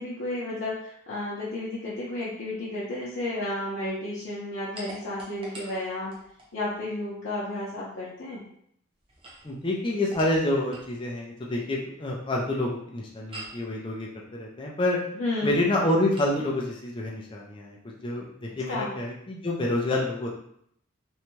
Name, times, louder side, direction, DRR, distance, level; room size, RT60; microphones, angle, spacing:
voice 1, 0.0-6.1 6.5-8.4 15.2-15.6 18.7-18.9, left 1 dB, 75° left, -8 dB, 0.7 m, -32 dB
sound 1, 4.7-6.5 9.0-11.0 13.3-13.7 16.1-16.4, right 1 dB, 25° right, 0.5 m, -44 dB
voice 2, 9.4-15.0 15.4-20.3, left 1 dB, 25° left, -2 dB, 0.4 m, -28 dB
2.6 x 2.2 x 3.0 m, 0.70 s
head